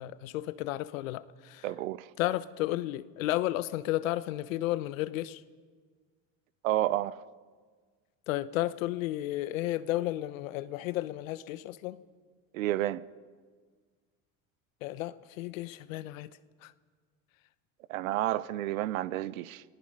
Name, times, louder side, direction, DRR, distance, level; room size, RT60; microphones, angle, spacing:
voice 1, 0.0-1.6 2.2-5.4 8.3-12.0 14.8-16.3 16.6-16.7, left 15 dB, 80° left, 0.9 m, -33 dB
voice 2, 1.6-2.1 6.6-7.2 12.5-13.0 17.9-19.6, right 14 dB, 85° right, 0.7 m, -30 dB
27.5 x 18.5 x 5.4 m
hypercardioid pair, 80°, 39 cm